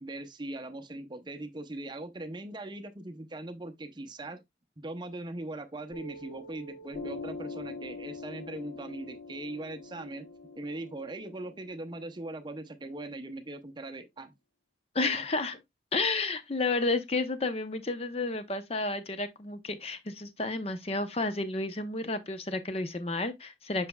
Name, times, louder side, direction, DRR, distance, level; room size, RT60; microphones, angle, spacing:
voice 1, 0.0-4.4 4.8-10.3 10.6-14.3 15.0-15.2, right 2 dB, 25° right, 0.7 m, -40 dB
Piano, 5.9-13.0, left 2 dB, 65° left, 1.1 m, -44 dB
voice 2, 14.9-15.6 15.9-23.9, left 3 dB, 35° left, 0.7 m, -31 dB
7.4 x 5.6 x 2.2 m
head